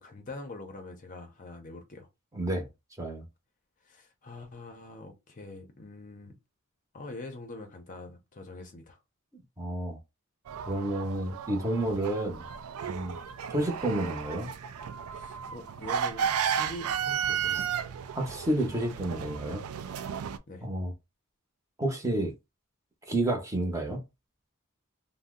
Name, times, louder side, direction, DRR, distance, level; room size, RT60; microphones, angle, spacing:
voice 1, 0.0-2.1 3.8-6.4 6.9-9.0 15.1-17.8 20.5-20.7, left 2 dB, 40° left, 0.6 m, -44 dB
voice 2, 2.3-2.7 3.0-3.2 9.6-10.0 10.7-12.4 12.9-13.2 13.5-14.5 18.1-19.6 20.6-20.9 21.8-22.3 23.1-24.0, right 1 dB, 15° right, 0.7 m, -30 dB
sound 1, 10.5-20.4, right 8 dB, 80° right, 0.3 m, -34 dB
2.6 x 2.0 x 3.5 m
head